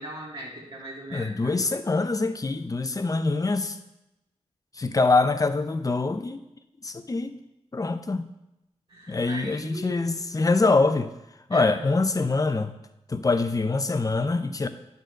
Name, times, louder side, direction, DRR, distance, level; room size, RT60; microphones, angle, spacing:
voice 1, 0.0-1.5 8.9-10.0 11.5-11.8, right 1 dB, 55° right, -7 dB, 2.0 m, -39 dB
voice 2, 1.1-3.8 4.8-6.4 6.8-7.4 7.7-8.3 9.1-11.1 11.5-12.8 13.1-14.7, left 3 dB, 30° left, 9 dB, 0.7 m, -24 dB
10.0 x 4.1 x 6.4 m, 0.91 s
wide cardioid pair, 80°, 11 cm